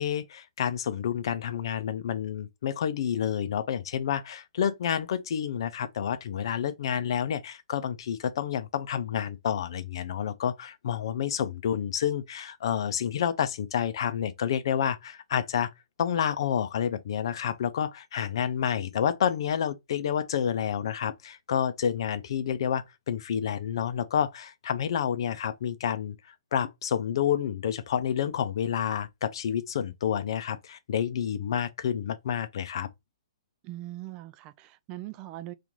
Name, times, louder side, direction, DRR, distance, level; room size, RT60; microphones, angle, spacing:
voice 1, 0.0-15.7 16.0-26.1 26.5-32.9, left 8 dB, 60° left, 0.5 m, -29 dB
voice 2, 33.6-35.5, right 15 dB, 30° right, 0.3 m, -41 dB
2.9 x 2.5 x 3.8 m
hypercardioid pair, 130°, 3 cm